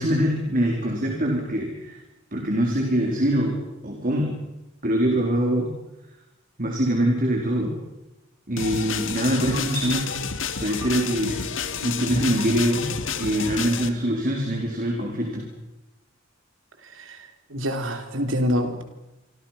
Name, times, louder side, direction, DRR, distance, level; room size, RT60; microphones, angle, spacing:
voice 1, 0.0-2.0 2.3-4.4 4.8-5.7 6.6-7.8 8.5-10.1 10.6-11.4 11.8-12.9 13.2-15.5, equal, 45° right, 1 dB, 4.0 m, -24 dB
sound 1, 8.6-13.9, left 6 dB, 80° left, 2.0 m, -30 dB
voice 2, 16.9-18.8, equal, 85° right, 6 dB, 3.9 m, -26 dB
28.0 x 24.5 x 5.9 m, 0.97 s
head